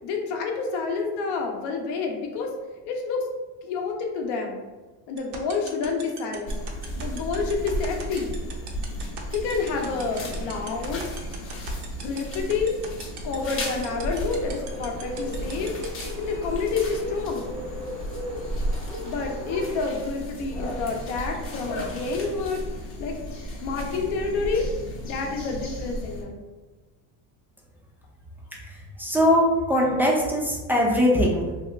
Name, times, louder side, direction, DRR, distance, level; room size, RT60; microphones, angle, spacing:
voice 1, 0.0-2.5 2.9-3.3 3.6-4.6 5.1-6.6 7.0-8.3 9.3-11.0 12.0-12.7 13.2-15.7 16.2-17.5 19.0-22.6 23.0-23.2 23.6-24.7 25.0-26.4, left 4 dB, 65° left, 2 dB, 0.7 m, -28 dB
sound 1, 5.2-16.0, right 8 dB, 65° right, 0.7 m, -38 dB
sound 2, 6.5-26.2, equal, 30° left, 0.7 m, -34 dB
Bird, 13.3-19.8, equal, 80° right, 1.2 m, -38 dB
voice 2, 28.5-29.4 29.7-31.6, equal, 5° right, -3 dB, 0.4 m, -22 dB
2.8 x 2.3 x 3.1 m, 1.2 s
cardioid pair, 125°, 44 cm